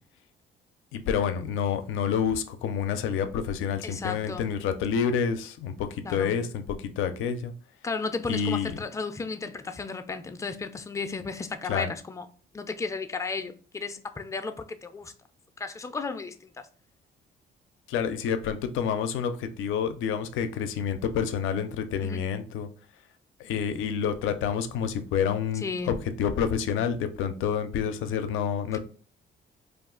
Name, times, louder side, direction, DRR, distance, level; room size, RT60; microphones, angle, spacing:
voice 1, 0.9-7.5 8.3-8.7 11.7-11.9 17.9-22.7 23.4-28.8, left 7 dB, 85° left, 0.4 m, -28 dB
voice 2, 3.8-4.5 6.0-6.4 7.8-12.3 12.5-15.1 15.6-16.7 22.0-22.3 25.5-26.0 28.7-28.8, left 4 dB, 15° left, 0.3 m, -34 dB
2.4 x 2.3 x 3.6 m
cardioid pair, 90°, 20 cm